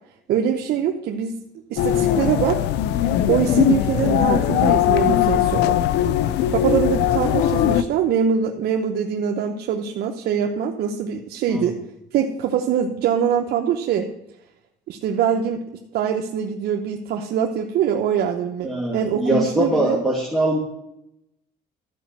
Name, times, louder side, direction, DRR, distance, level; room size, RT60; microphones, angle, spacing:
voice 1, 0.3-1.3 1.7-2.6 3.3-5.8 6.5-11.7 12.1-14.1 14.9-15.6 15.9-20.0, right 8 dB, 70° right, 2 dB, 0.9 m, -23 dB
sound 1, 1.8-7.8, left 11 dB, 85° left, 0.6 m, -20 dB
voice 2, 18.6-20.6, right 1 dB, ahead, -6 dB, 2.3 m, -22 dB
12.5 x 5.1 x 7.4 m, 0.83 s
cardioid pair, 110°, 17 cm